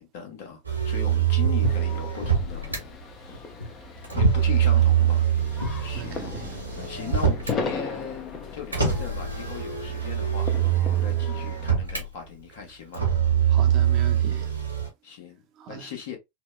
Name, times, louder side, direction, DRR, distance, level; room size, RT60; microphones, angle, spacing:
voice 1, 0.0-3.4 4.1-6.2 6.7-13.0 15.0-15.4 15.7-16.2, left 7 dB, 50° left, 1.1 m, -38 dB
Motor vehicle (road), 0.6-2.8 4.0-7.6 8.7-12.1 12.9-14.9, right 9 dB, 85° right, 1.1 m, -24 dB
Walk footsteps, 1.4-5.9, equal, 90° left, 0.7 m, -29 dB
sound 1, 1.6-11.7, left 4 dB, 25° left, 0.6 m, -38 dB
voice 2, 6.0-6.6 13.5-14.5 15.6-15.9, right 7 dB, 35° right, 0.6 m, -39 dB
4.2 x 2.1 x 2.2 m
figure-of-eight pair, 90°, 0 cm